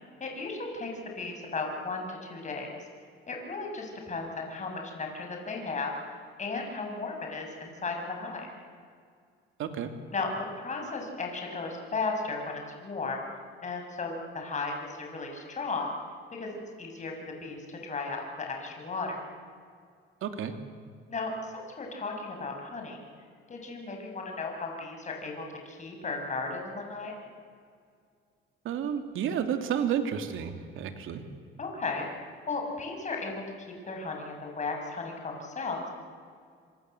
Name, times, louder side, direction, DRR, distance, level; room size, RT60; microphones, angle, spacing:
voice 1, 0.2-0.9 1.1-2.7 3.3-5.9 6.4-8.5 10.1-13.2 13.6-15.9 16.4-17.1 17.4-19.1 21.1-23.0 23.5-27.2 31.6-33.4 33.9-35.9, left 3 dB, 35° left, 2 dB, 6.8 m, -35 dB
voice 2, 9.6-9.9 20.2-20.5 28.6-31.2, right 8 dB, 75° right, 7 dB, 2.8 m, -31 dB
26.0 x 26.0 x 8.0 m, 2.2 s
cardioid pair, 105°, 21 cm